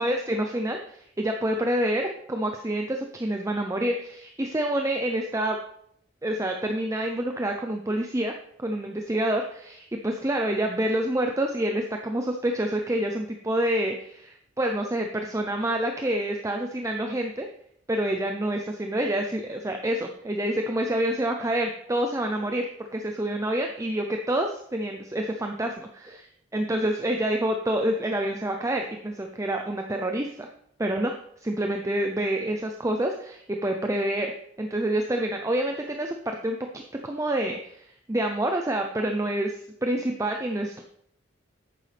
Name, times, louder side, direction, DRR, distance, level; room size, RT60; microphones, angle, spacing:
voice 1, 0.0-5.6 6.2-17.5 17.9-22.7 22.9-26.2 26.5-30.5 30.8-31.1 31.4-34.3 34.6-36.6 37.0-40.8, right 1 dB, 15° right, 3 dB, 0.6 m, -27 dB
10.5 x 8.9 x 3.4 m, 0.70 s
head